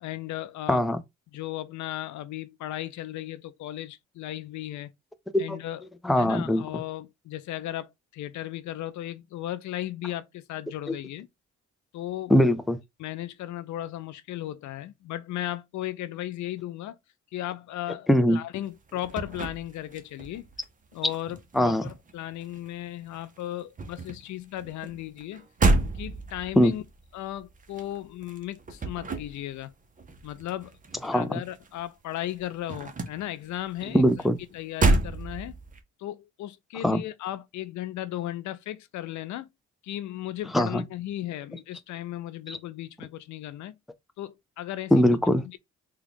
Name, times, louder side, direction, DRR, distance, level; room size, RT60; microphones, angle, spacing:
voice 1, 0.0-0.8 1.3-4.9 5.4-5.8 6.2-11.3 11.9-12.3 13.0-17.0 17.3-20.5 20.9-25.5 25.9-26.8 27.1-29.7 30.2-30.7 31.1-34.1 34.5-35.5 36.0-39.5 39.8-43.8 44.2-45.1, left 13 dB, 70° left, 0.5 m, -36 dB
voice 2, 0.7-1.0 5.3-5.6 6.0-6.6 12.3-12.8 18.1-18.4 21.5-21.9 26.6-26.7 31.0-31.3 33.9-34.4 36.8-37.0 40.5-40.8 42.5-42.6 44.9-45.4, equal, ahead, 0.4 m, -21 dB
sound 1, 18.7-20.7 20.9-22.9 23.1-31.8 32.1-35.8, right 2 dB, 25° right, 0.7 m, -30 dB
3.6 x 2.3 x 3.5 m
cardioid pair, 90°, 30 cm